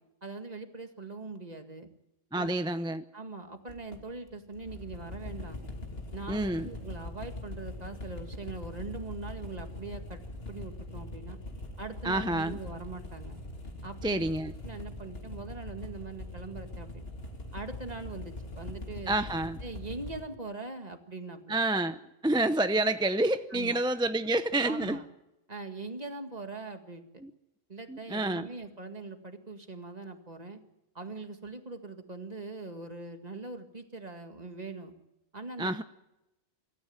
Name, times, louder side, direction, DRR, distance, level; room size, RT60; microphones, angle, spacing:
voice 1, 0.2-1.9 2.3-2.6 3.1-5.6 6.1-10.2 10.5-11.4 11.8-13.4 13.8-14.2 14.6-17.1 17.5-19.1 19.6-21.6 23.5-23.8 24.6-25.0 25.5-27.1 27.7-30.6 30.9-34.9 35.3-35.7, right 3 dB, 30° right, 6 dB, 2.1 m, -42 dB
voice 2, 2.3-3.0 6.3-6.7 12.0-12.6 14.0-14.5 19.1-19.6 21.5-25.0 27.2-27.3 27.9-28.5 35.6-35.8, right 2 dB, 5° right, 10 dB, 0.5 m, -28 dB
sound 1, 3.7-20.2, left 2 dB, 50° left, 3.1 m, -42 dB
25.5 x 14.0 x 9.1 m, 0.92 s
omnidirectional pair, 1.3 m